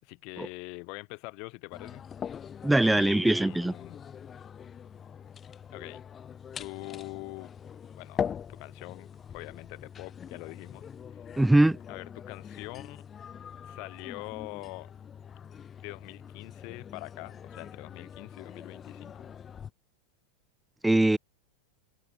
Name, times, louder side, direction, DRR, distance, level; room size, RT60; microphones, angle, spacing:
voice 1, 0.0-2.0 2.8-4.0 5.7-6.0 6.6-7.5 8.0-8.2 8.5-10.9 11.1-11.2 11.9-13.0 13.6-14.9 15.8-19.3, left 32 dB, 45° left, 6.1 m, -43 dB
sound 1, 1.7-19.7, left 8 dB, 20° left, 2.6 m, -42 dB
voice 2, 2.6-3.7 11.4-11.8 20.8-21.2, right 1 dB, 5° right, 1.5 m, -22 dB
figure-of-eight pair, 90°, 0 cm